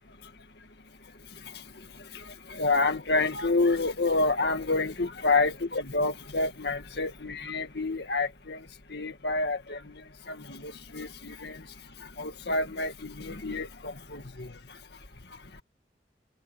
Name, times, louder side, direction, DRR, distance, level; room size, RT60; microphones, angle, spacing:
voice 1, 0.2-15.6, left 3 dB, 60° left, 2.0 m, -30 dB
head